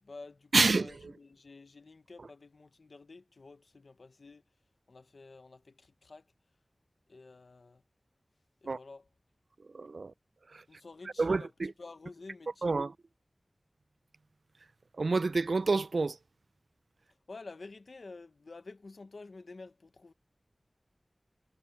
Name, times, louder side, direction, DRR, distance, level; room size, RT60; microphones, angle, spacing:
voice 1, 0.0-4.4 4.9-6.3 7.1-7.8 8.6-9.1 10.7-12.8 17.3-20.1, left 3 dB, 85° left, 0.9 m, -50 dB
voice 2, 0.5-1.1 8.7-8.8 9.7-10.1 10.5-10.6 11.2-11.7 12.6-12.9 15.0-16.2, right 3 dB, 85° right, 0.3 m, -28 dB
wide cardioid pair, 55°, 0 cm